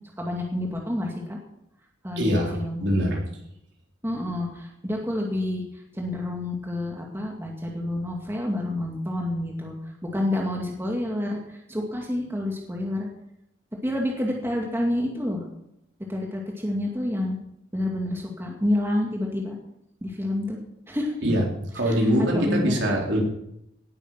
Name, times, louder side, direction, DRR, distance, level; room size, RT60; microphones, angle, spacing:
voice 1, 0.2-1.4 2.0-2.8 4.0-5.6 5.9-9.8 10.0-11.4 11.7-13.1 13.8-15.4 16.1-17.4 17.7-19.6 20.0-20.6 20.9-21.1 21.9-22.0 22.3-22.8, left 1 dB, 10° right, -1 dB, 2.3 m, -28 dB
voice 2, 2.2-2.5 2.8-3.2 21.2-21.4 21.7-23.2, equal, 60° right, -1 dB, 4.1 m, -23 dB
18.0 x 9.2 x 6.0 m, 0.80 s
head